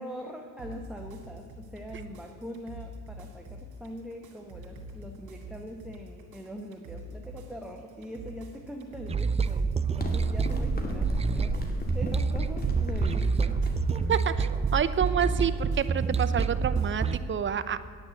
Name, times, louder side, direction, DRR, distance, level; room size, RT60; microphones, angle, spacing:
voice 1, 0.0-13.6, equal, 5° right, 1 dB, 1.2 m, -42 dB
sound 1, 0.6-17.2, equal, 85° right, 2.1 m, -45 dB
sound 2, 9.1-17.2, right 5 dB, 20° right, 0.4 m, -28 dB
sound 3, 10.0-15.0, left 1 dB, 30° left, 2.1 m, -34 dB
voice 2, 14.1-17.9, right 8 dB, 40° right, 12 dB, 0.8 m, -28 dB
9.3 x 9.3 x 7.8 m, 2.3 s
cardioid pair, 90°, 30 cm